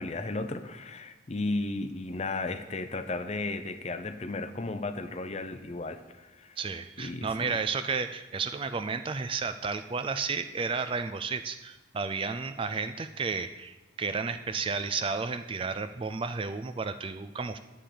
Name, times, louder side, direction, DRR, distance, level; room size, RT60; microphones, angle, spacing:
voice 1, 0.0-6.6 7.0-7.6, left 2 dB, 30° left, 10 dB, 0.5 m, -34 dB
voice 2, 6.6-17.6, right 5 dB, 25° right, 10 dB, 0.3 m, -32 dB
11.0 x 7.5 x 5.0 m, 1.1 s
head